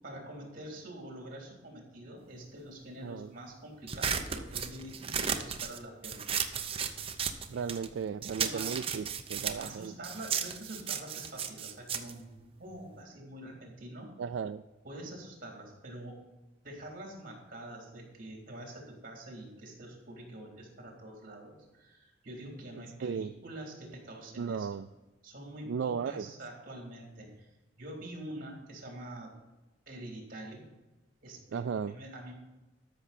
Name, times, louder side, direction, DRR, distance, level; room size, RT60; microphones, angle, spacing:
voice 1, 0.0-6.2 8.4-8.7 9.6-14.1 14.8-16.2 16.6-24.8 25.2-27.5 27.8-29.3 29.9-30.6 31.2-32.3, right 1 dB, 50° right, 0 dB, 3.3 m, -46 dB
sound 1, 3.9-7.9 8.2-13.0, right 7 dB, 30° right, 0.7 m, -35 dB
voice 2, 7.5-9.0 9.3-9.9 14.2-14.6 23.0-23.3 24.4-24.9 25.7-26.3 31.5-32.0, right 6 dB, 75° right, 10 dB, 0.3 m, -35 dB
13.0 x 6.1 x 4.3 m, 1.1 s
head